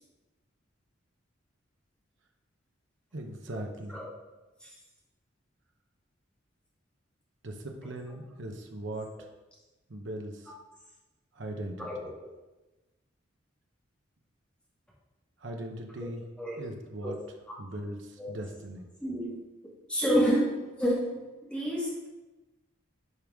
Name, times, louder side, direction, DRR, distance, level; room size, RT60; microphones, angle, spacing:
voice 1, 3.1-4.0 7.4-9.3 9.9-10.5 11.3-12.1 15.4-16.2 16.6-17.2 17.6-18.9, right 1 dB, 70° right, 3 dB, 0.9 m, -39 dB
voice 2, 11.8-12.1 16.4-16.6 17.0-17.2 17.5-17.6 18.2-18.3 19.0-19.4 19.9-21.0 21.5-22.1, equal, 5° left, -7 dB, 2.4 m, -29 dB
11.0 x 5.3 x 3.6 m, 1.1 s
head